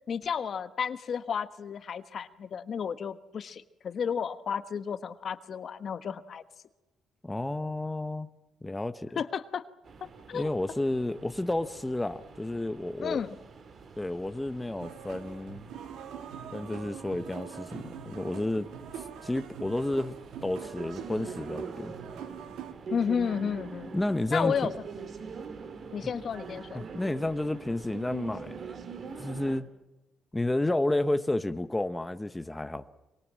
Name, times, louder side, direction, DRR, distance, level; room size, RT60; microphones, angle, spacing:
voice 1, 0.1-6.4 9.2-9.6 10.0-10.5 13.0-13.4 22.9-23.9 24.3-24.7 25.9-27.2, left 7 dB, 55° left, 11 dB, 1.3 m, -32 dB
voice 2, 7.2-8.3 8.6-9.2 10.3-13.2 14.0-15.6 16.5-18.7 19.2-20.2 20.4-21.9 23.9-24.7 26.7-28.6 29.2-29.7 30.3-32.9, left 1 dB, 10° left, 10 dB, 1.0 m, -31 dB
sound 1, 9.8-29.6, right 5 dB, 50° right, 2.0 m, -44 dB
sound 2, 14.8-22.7, right 8 dB, 90° right, 2.0 m, -44 dB
24.5 x 23.0 x 7.6 m, 1.0 s
cardioid pair, 90°, 0 cm